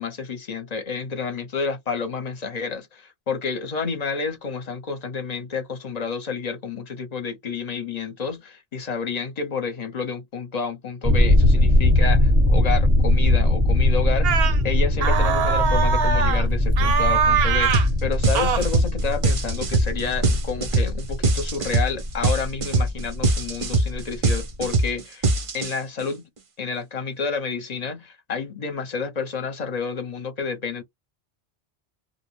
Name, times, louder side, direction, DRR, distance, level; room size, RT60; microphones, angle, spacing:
voice 1, 0.0-25.3 25.5-26.2 26.6-30.8, left 5 dB, 45° left, 0.7 m, -30 dB
sound 1, 11.0-24.7, left 1 dB, 10° right, 0.7 m, -21 dB
sound 2, 14.2-14.6 15.0-16.5 16.8-17.9 18.3-18.6, right 7 dB, 70° right, 0.8 m, -22 dB
sound 3, 17.7-17.9 18.2-26.0, right 2 dB, 45° right, 0.4 m, -22 dB
2.5 x 2.0 x 3.0 m
omnidirectional pair, 1.1 m